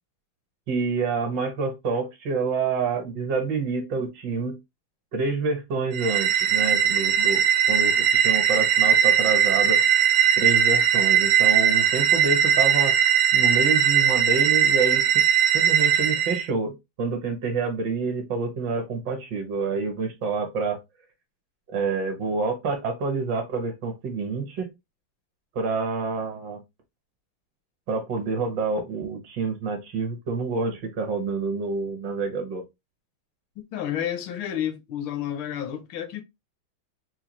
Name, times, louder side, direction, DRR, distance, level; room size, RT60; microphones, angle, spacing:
voice 1, 0.7-4.6 5.1-9.8 10.4-12.9 13.3-15.2 15.5-20.8 21.7-24.7 25.5-26.6 27.9-32.6, right 4 dB, 65° right, 1.5 m, -27 dB
sound 1, 5.9-16.4, right 9 dB, 85° right, 1.4 m, -20 dB
voice 2, 33.6-36.2, left 10 dB, 75° left, 1.4 m, -30 dB
4.2 x 2.3 x 2.9 m
omnidirectional pair, 2.2 m